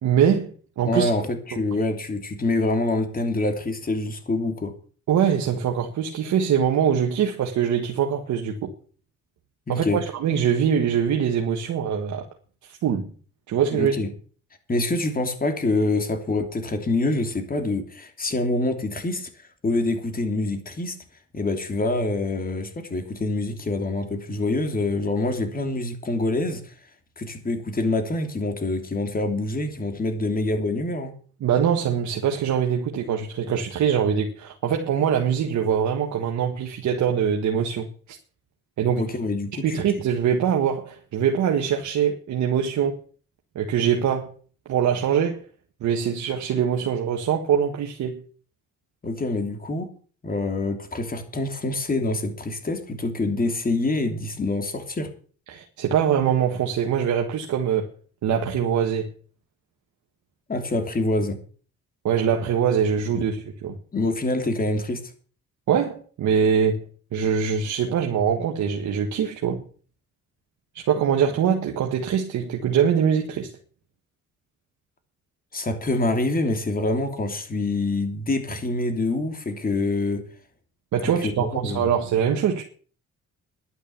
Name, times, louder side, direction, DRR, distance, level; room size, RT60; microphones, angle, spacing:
voice 1, 0.0-1.1 1.5-1.6 5.1-8.7 9.7-12.3 12.6-13.1 13.5-13.9 31.4-38.2 38.8-39.1 39.6-43.0 43.5-44.3 44.6-45.4 45.8-48.2 55.5-57.9 58.2-59.1 62.0-63.8 65.7-66.8 67.1-69.6 70.7-73.5 80.9-82.6, right 8 dB, 70° right, 1.7 m, -23 dB
voice 2, 0.9-4.7 9.7-10.0 13.7-14.1 14.7-19.3 19.6-20.9 21.3-26.7 27.2-31.1 39.0-39.8 49.0-49.9 50.2-55.1 60.5-61.4 63.1-63.2 63.9-65.0 75.5-80.2 81.2-81.9, left 2 dB, 30° left, 3.0 m, -26 dB
11.0 x 9.9 x 7.0 m
cardioid pair, 90°, 30 cm